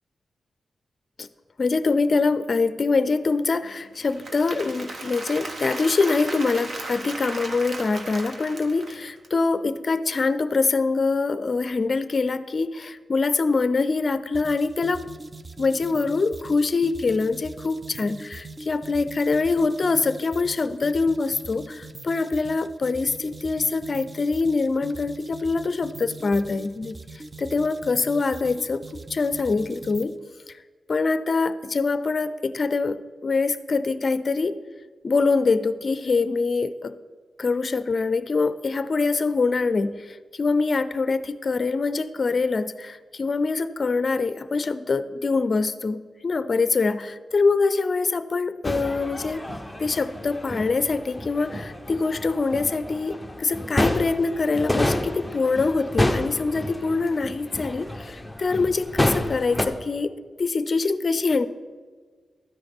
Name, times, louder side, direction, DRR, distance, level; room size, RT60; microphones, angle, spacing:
voice 1, 1.6-15.0 15.6-26.9 27.4-30.2 30.9-34.6 35.0-37.0 37.4-49.4 49.8-60.1 60.4-61.5, left 4 dB, 45° left, 13 dB, 0.5 m, -24 dB
Applause / Crowd, 3.9-9.3, right 2 dB, 55° right, 1.3 m, -36 dB
sound 1, 14.3-30.2, right 2 dB, 25° right, 0.5 m, -42 dB
sound 2, 48.6-59.7, left 1 dB, 5° left, 0.7 m, -29 dB
12.5 x 9.7 x 3.5 m, 1.5 s
wide cardioid pair, 105°, 0 cm